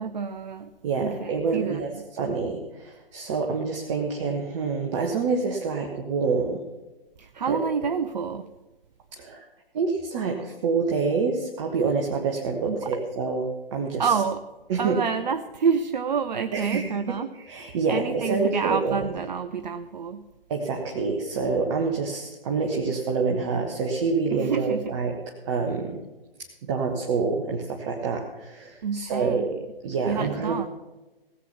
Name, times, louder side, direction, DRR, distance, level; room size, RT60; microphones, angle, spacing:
voice 1, 0.0-0.7 1.0-2.0 7.2-8.5 12.7-12.9 14.0-14.4 14.8-17.3 17.9-20.3 24.3-24.9 28.8-29.5 30.1-30.7, right 6 dB, 50° right, 8 dB, 0.6 m, -28 dB
voice 2, 0.8-6.6 7.5-7.6 9.1-9.4 9.7-14.1 14.7-15.0 16.5-19.1 20.5-25.2 25.5-26.0 26.6-29.6 29.8-30.7, right 4 dB, 30° right, 1 dB, 1.2 m, -27 dB
17.0 x 8.3 x 5.7 m, 1.1 s
figure-of-eight pair, 130°, 29 cm